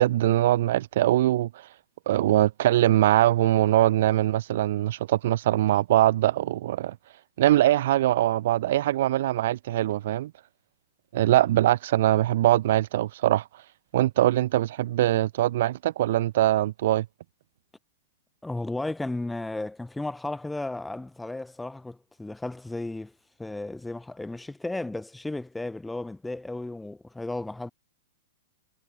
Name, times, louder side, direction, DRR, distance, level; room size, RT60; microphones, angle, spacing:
voice 1, 0.0-1.5 2.1-7.0 7.4-10.3 11.1-13.4 13.9-17.1, right 14 dB, 60° right, 0.8 m, -22 dB
voice 2, 18.4-23.1 23.4-27.7, left 2 dB, 5° left, 0.7 m, -34 dB
hypercardioid pair, 150°, 0 cm